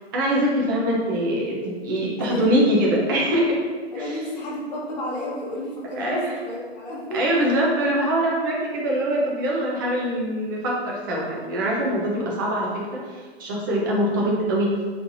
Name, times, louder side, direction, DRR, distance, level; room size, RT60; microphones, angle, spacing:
voice 1, 0.1-3.6 4.0-4.1 6.0-6.4 7.1-14.7, equal, 20° right, -3 dB, 0.5 m, -23 dB
voice 2, 2.2-2.7 3.9-7.4, left 1 dB, 40° left, -4 dB, 1.2 m, -32 dB
4.3 x 3.2 x 2.5 m, 1.5 s
hypercardioid pair, 150°, 32 cm